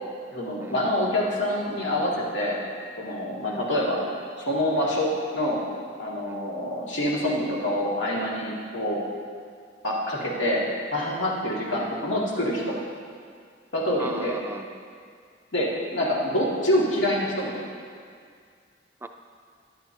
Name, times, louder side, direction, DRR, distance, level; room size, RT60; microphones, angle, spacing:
voice 1, 0.3-2.6 3.0-4.0 4.4-5.6 6.0-9.0 9.8-12.8 13.7-14.4 15.5-17.6, left 1 dB, 85° left, -5 dB, 2.2 m, -26 dB
voice 2, 14.0-14.8 19.0-19.1, right 2 dB, 10° right, 5 dB, 0.3 m, -38 dB
14.5 x 10.5 x 2.8 m, 2.1 s
head